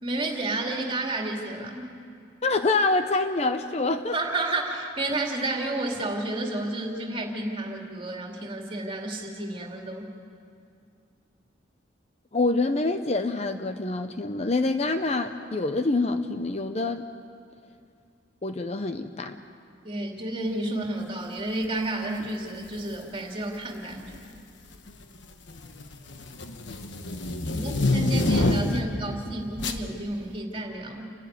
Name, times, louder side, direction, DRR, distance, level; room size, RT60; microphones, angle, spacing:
voice 1, 0.0-1.9 4.1-10.1 19.8-24.1 27.5-31.0, right 2 dB, 25° right, 0 dB, 2.5 m, -31 dB
voice 2, 2.4-4.2 12.3-17.0 18.4-19.4, left 3 dB, 35° left, 8 dB, 0.6 m, -26 dB
sound 1, 22.7-23.0 23.9-24.4 24.7-29.0 29.6-29.8, left 2 dB, 70° left, 1.3 m, -27 dB
29.0 x 12.0 x 9.5 m, 2.4 s
head